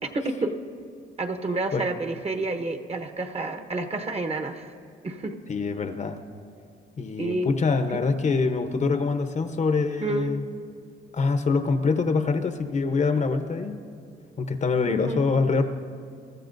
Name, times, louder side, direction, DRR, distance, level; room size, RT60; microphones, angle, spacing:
voice 1, 0.0-0.5 1.2-4.7 5.0-5.4 7.2-7.5 10.0-10.3 14.8-15.3, right 2 dB, 30° right, 7 dB, 1.1 m, -29 dB
voice 2, 5.5-6.2 7.0-10.4 11.1-13.8 14.4-15.6, left 4 dB, 35° left, 8 dB, 0.8 m, -25 dB
23.0 x 13.0 x 2.6 m, 2.4 s
cardioid pair, 90°, 20 cm